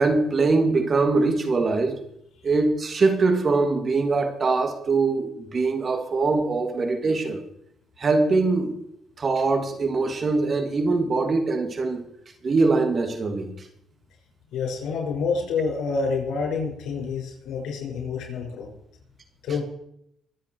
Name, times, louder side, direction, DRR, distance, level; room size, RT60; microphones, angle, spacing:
voice 1, 0.0-2.0 2.4-7.4 8.0-8.8 9.2-12.0 12.4-13.5, right 3 dB, 40° right, 6 dB, 2.6 m, -22 dB
voice 2, 14.5-18.7 19.4-19.6, left 5 dB, 85° left, 0 dB, 6.1 m, -28 dB
24.0 x 8.3 x 4.8 m, 0.74 s
cardioid pair, 90°, 0 cm